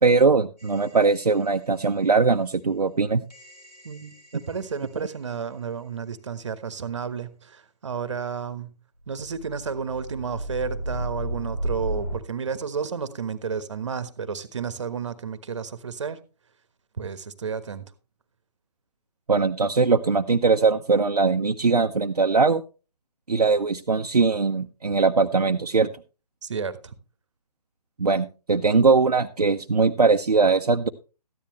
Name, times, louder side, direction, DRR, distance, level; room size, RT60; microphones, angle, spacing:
voice 1, 0.0-3.2 19.3-22.6 23.3-25.9 28.0-30.9, right 4 dB, 65° right, 0.8 m, -21 dB
sound 1, 0.6-1.7 3.3-5.1 9.0-12.2, right 1 dB, 80° left, 4.7 m, -34 dB
voice 2, 3.8-8.7 9.1-16.2 17.0-17.9 26.4-26.9, right 6 dB, 45° right, 1.3 m, -32 dB
14.0 x 10.5 x 3.1 m
figure-of-eight pair, 145°, 21 cm